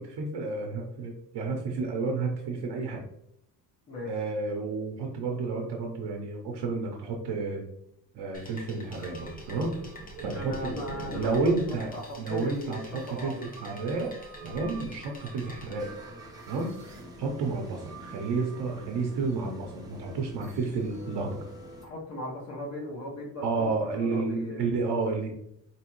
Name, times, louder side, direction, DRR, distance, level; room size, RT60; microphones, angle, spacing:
voice 1, 0.0-3.0 4.0-7.6 8.1-9.8 10.2-10.7 11.1-14.1 14.4-15.9 16.5-21.4 23.4-25.4, right 3 dB, 80° right, 0 dB, 0.9 m, -31 dB
sound 1, 8.3-15.7, left 2 dB, 20° left, 0.9 m, -49 dB
sound 2, 8.8-17.0, right 3 dB, 55° right, 1.3 m, -45 dB
voice 2, 10.3-13.5 21.8-24.6, left 1 dB, 40° left, -6 dB, 1.1 m, -37 dB
sound 3, 15.7-21.8, right 1 dB, 10° right, 1.0 m, -46 dB
5.1 x 3.1 x 3.1 m, 0.75 s
cardioid pair, 155°, 40 cm